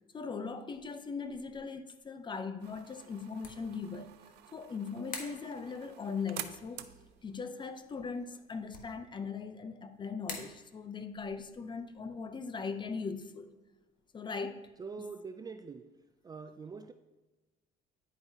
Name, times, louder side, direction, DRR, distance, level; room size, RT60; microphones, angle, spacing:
voice 1, 0.1-4.1 4.5-6.9 7.2-13.5 14.1-14.7, left 5 dB, 25° left, 9 dB, 0.6 m, -39 dB
sound 1, 0.7-14.9, left 4 dB, 55° left, 1.3 m, -53 dB
sound 2, 2.6-8.9, right 12 dB, 85° right, 0.5 m, -50 dB
voice 2, 14.8-16.0 16.2-16.9, right 5 dB, 25° right, 8 dB, 0.3 m, -44 dB
10.5 x 4.6 x 2.7 m, 1.1 s
cardioid pair, 110°, 17 cm